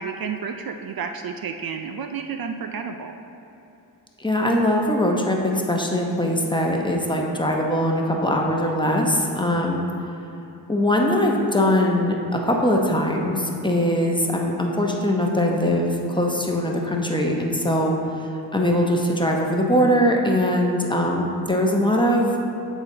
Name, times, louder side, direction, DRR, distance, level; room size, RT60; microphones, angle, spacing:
voice 1, 0.0-3.2, right 6 dB, 60° right, 6 dB, 0.5 m, -31 dB
voice 2, 4.2-9.9 10.7-18.0 18.5-22.3, left 1 dB, 10° left, 0 dB, 0.9 m, -21 dB
8.0 x 4.0 x 3.9 m, 2.9 s
cardioid pair, 50°, 41 cm